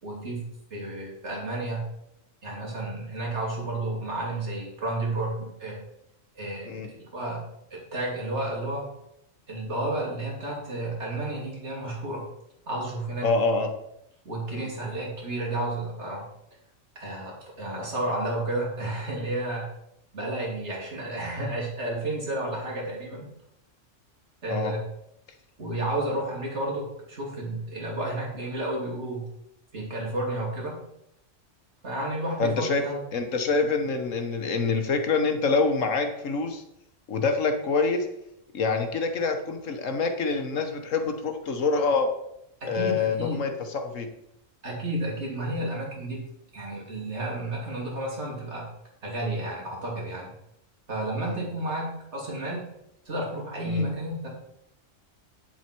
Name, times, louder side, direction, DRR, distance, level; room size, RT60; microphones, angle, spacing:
voice 1, 0.0-1.9 2.4-5.8 6.3-8.9 9.5-12.3 12.7-13.3 14.2-16.3 16.9-19.7 20.1-23.3 24.4-24.8 25.6-29.3 29.7-30.8 31.8-33.0 42.6-43.4 44.6-48.7 49.0-50.3 50.9-52.6 53.1-54.3, right 1 dB, 60° right, -2 dB, 3.1 m, -31 dB
voice 2, 13.2-13.7 14.5-14.7 24.5-24.7 32.4-32.9 33.1-36.6 37.1-38.1 38.5-42.1 42.6-44.1 51.2-51.5 53.7-53.9, left 4 dB, 80° left, 6 dB, 1.6 m, -26 dB
9.2 x 7.5 x 4.5 m, 0.79 s
omnidirectional pair, 1.3 m